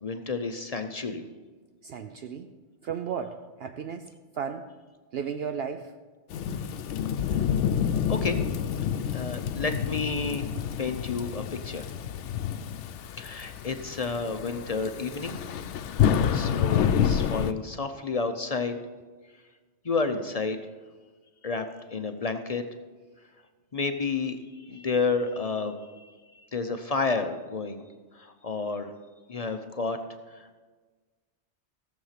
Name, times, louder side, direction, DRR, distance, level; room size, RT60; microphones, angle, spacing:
voice 1, 0.0-1.2 7.3-7.5 8.1-8.4 9.1-10.5 10.8-11.9 13.2-15.4 16.3-18.8 19.8-20.6 21.4-22.6 23.7-27.8 28.2-28.9 29.3-30.0 30.3-30.5, left 4 dB, 40° left, 8 dB, 0.7 m, -31 dB
voice 2, 1.8-2.5 2.8-4.7 5.1-5.9, right 7 dB, 65° right, 7 dB, 0.8 m, -34 dB
Thunderstorm / Rain, 6.3-17.5, left 8 dB, 80° left, 0.9 m, -28 dB
16.0 x 7.3 x 5.8 m, 1.4 s
omnidirectional pair, 1.2 m